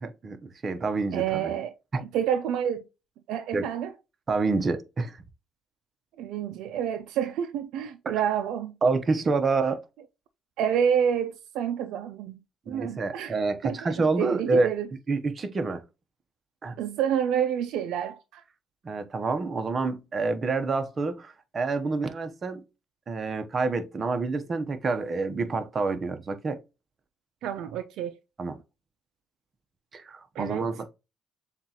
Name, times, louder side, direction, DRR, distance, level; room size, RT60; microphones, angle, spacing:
voice 1, 0.0-1.5 1.9-2.0 3.5-3.7 4.3-5.2 8.8-9.8 12.7-14.7 15.1-15.8 16.6-16.8 18.8-22.6 23.1-26.6 28.4-28.6 29.9-30.8, right 3 dB, 40° right, 0.8 m, -28 dB
voice 2, 1.1-1.7 2.1-2.8 3.3-3.9 6.2-8.7 10.6-13.3 13.6-14.9 16.8-18.4 27.4-28.1 30.4-30.7, right 9 dB, 85° right, 0.4 m, -28 dB
7.1 x 2.4 x 2.8 m
cardioid pair, 85°, 0 cm